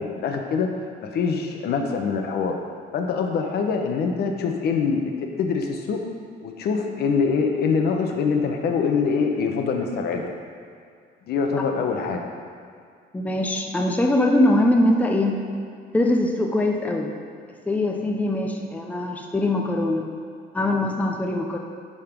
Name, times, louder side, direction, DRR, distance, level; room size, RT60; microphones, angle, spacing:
voice 1, 0.0-2.6 2.9-6.0 6.4-10.3 11.3-12.3, left 5 dB, 65° left, 3 dB, 0.9 m, -24 dB
voice 2, 13.1-15.5 15.9-17.1 17.7-20.1 20.5-21.6, left 1 dB, 10° left, 1 dB, 0.6 m, -22 dB
10.5 x 3.8 x 5.2 m, 2.3 s
cardioid pair, 140°, 18 cm